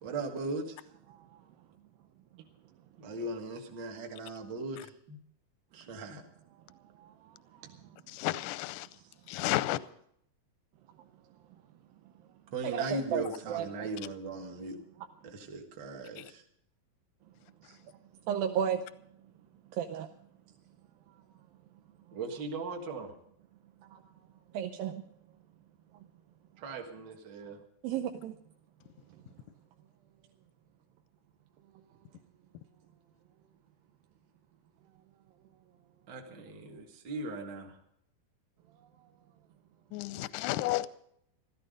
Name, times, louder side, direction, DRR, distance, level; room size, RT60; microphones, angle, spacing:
voice 1, 0.0-0.7 3.0-5.2 5.7-6.2 12.5-14.8 15.2-16.4 22.1-23.1 26.6-27.6 36.1-37.8, right 2 dB, 40° right, 1.8 m, -38 dB
voice 2, 6.7-8.0 9.0-9.1 11.5-11.6 12.6-13.9 15.0-15.1 17.6-17.9 18.2-19.0 19.7-20.1 23.8-24.1 24.5-25.0 27.8-28.4 29.1-29.2 38.8-39.1, right 9 dB, 80° right, 2.5 m, -35 dB
voice 3, 8.1-8.9 9.3-9.8 16.2-16.3 39.9-40.9, left 16 dB, 80° left, 1.9 m, -32 dB
15.0 x 14.0 x 5.2 m
omnidirectional pair, 4.2 m